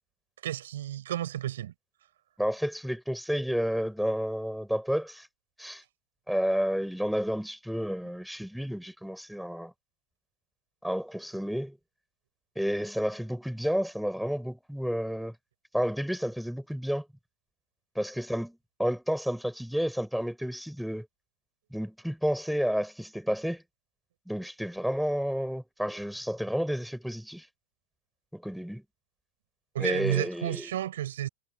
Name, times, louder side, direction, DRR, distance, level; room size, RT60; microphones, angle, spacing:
voice 1, 0.4-1.7 29.7-31.3, right 12 dB, 80° right, 5.5 m, -31 dB
voice 2, 2.4-5.3 5.6-5.8 6.3-9.7 10.8-11.8 12.5-15.4 15.7-17.1 17.9-21.1 21.7-23.6 24.3-27.5 28.3-28.8 29.8-30.7, equal, ahead, 6.2 m, -31 dB
hypercardioid pair, 105°, 0 cm